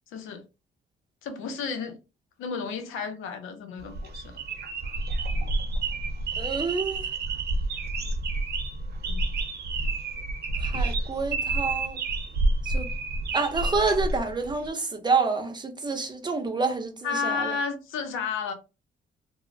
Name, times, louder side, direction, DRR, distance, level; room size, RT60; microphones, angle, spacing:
voice 1, 0.1-0.4 1.2-2.0 2.4-4.3 9.1-9.2 17.0-18.5, left 5 dB, 85° left, 0.6 m, -32 dB
sound 1, 3.8-14.7, right 2 dB, 55° right, 0.7 m, -29 dB
voice 2, 6.4-7.0 10.6-12.0 12.6-12.9 13.3-17.5, right 4 dB, 20° right, 0.6 m, -28 dB
3.0 x 2.0 x 2.5 m
cardioid pair, 90°, 20 cm